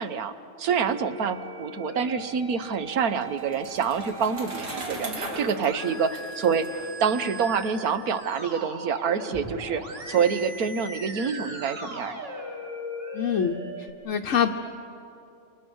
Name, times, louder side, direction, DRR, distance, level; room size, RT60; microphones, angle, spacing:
voice 1, 0.0-6.7 7.0-12.2, right 6 dB, 70° right, 11 dB, 1.5 m, -27 dB
Musical instrument, 0.9-13.9, right 1 dB, 40° right, 2.5 m, -39 dB
Bicycle, 2.6-7.7, right 1 dB, 85° right, 4.1 m, -40 dB
voice 2, 13.1-13.6 14.0-14.5, left 8 dB, 55° left, 2 dB, 1.1 m, -24 dB
29.5 x 26.5 x 6.4 m, 2.7 s
omnidirectional pair, 1.7 m